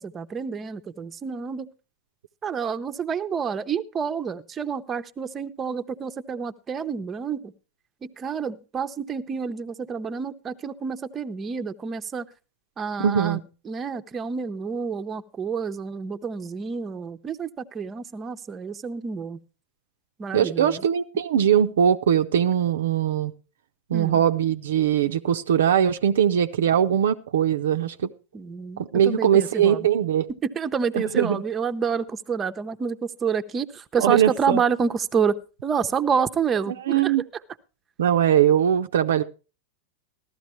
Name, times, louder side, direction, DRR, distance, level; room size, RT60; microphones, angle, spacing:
voice 1, 0.0-1.7 2.4-7.5 8.0-12.3 12.8-13.4 13.7-19.4 20.2-20.8 23.9-24.2 28.3-29.9 30.3-35.4 35.6-37.1, right 6 dB, 25° right, 0.7 m, -28 dB
voice 2, 13.0-13.4 20.3-23.3 23.9-28.1 28.8-30.3 30.9-31.4 34.0-34.6 36.7-37.2 38.0-39.2, right 9 dB, 70° right, 0.5 m, -21 dB
14.5 x 12.5 x 3.1 m
figure-of-eight pair, 95°, 0 cm